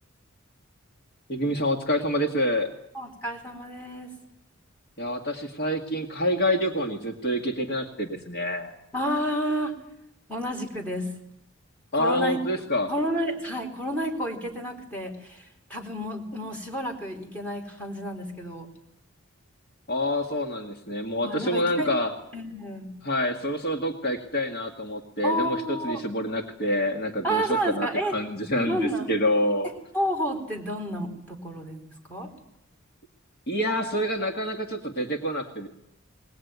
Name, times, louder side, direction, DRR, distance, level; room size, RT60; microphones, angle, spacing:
voice 1, 1.3-2.7 5.0-8.7 11.9-12.9 19.9-22.1 23.0-29.7 33.5-35.7, left 1 dB, 50° left, 3 dB, 2.0 m, -27 dB
voice 2, 2.9-4.1 8.9-9.7 10.3-11.1 12.0-12.4 12.9-18.7 21.2-21.9 22.3-22.9 25.2-26.0 27.2-28.2 28.6-29.1 29.9-31.8 32.1-32.3, equal, 10° left, 2 dB, 4.1 m, -30 dB
21.5 x 19.0 x 9.5 m, 0.77 s
head